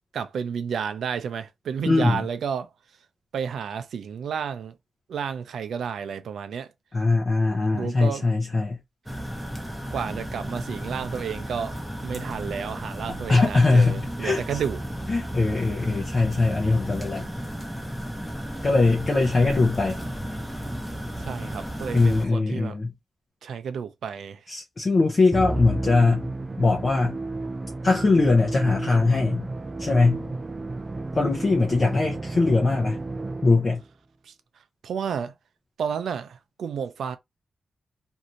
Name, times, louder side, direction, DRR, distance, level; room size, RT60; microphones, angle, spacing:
voice 1, 0.1-2.7 3.3-4.8 5.1-6.7 7.7-8.2 9.9-11.7 12.0-14.8 21.2-22.9 23.4-24.4 34.2-34.3 34.8-35.3 35.8-37.2, right 7 dB, 90° right, 0.5 m, -31 dB
voice 2, 1.9-2.2 6.9-8.8 13.3-14.4 15.1-17.3 18.6-20.0 21.9-22.9 24.5-26.3 26.6-27.2 27.8-29.5 29.8-30.3 31.1-33.0 33.4-33.8, left 3 dB, 35° left, 0.6 m, -21 dB
sound 1, 9.1-22.3, equal, ahead, 0.8 m, -34 dB
Musical instrument, 25.3-33.8, right 2 dB, 30° right, 0.3 m, -32 dB
2.7 x 2.5 x 2.9 m
wide cardioid pair, 120°, 0 cm